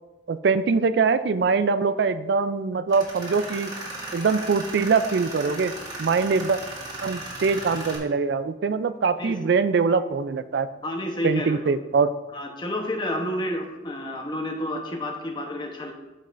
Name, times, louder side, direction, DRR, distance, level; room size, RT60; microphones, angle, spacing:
voice 1, 0.3-3.7 4.1-5.7 6.0-6.6 7.0-10.7 11.2-12.1, right 5 dB, 70° right, 13 dB, 0.4 m, -23 dB
Tools, 2.9-8.0, right 2 dB, 20° right, 1.6 m, -36 dB
voice 2, 10.8-11.6 12.3-15.9, left 1 dB, 25° left, 3 dB, 0.9 m, -30 dB
13.5 x 5.3 x 2.5 m, 1.1 s
head